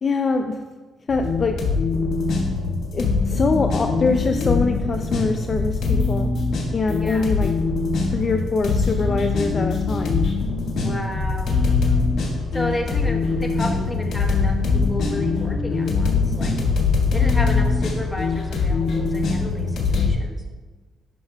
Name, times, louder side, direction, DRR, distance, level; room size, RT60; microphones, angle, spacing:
voice 1, 0.0-0.6 1.1-1.6 2.9-6.3 6.7-7.5 8.1-10.2, left 4 dB, 40° left, 5 dB, 0.4 m, -23 dB
sound 1, 1.1-20.1, left 4 dB, 65° left, 1.5 m, -22 dB
voice 2, 10.8-11.5 12.5-16.5 17.1-20.4, left 1 dB, 10° left, 0 dB, 1.1 m, -32 dB
10.0 x 5.7 x 2.2 m, 1.3 s
cardioid pair, 90°, 0 cm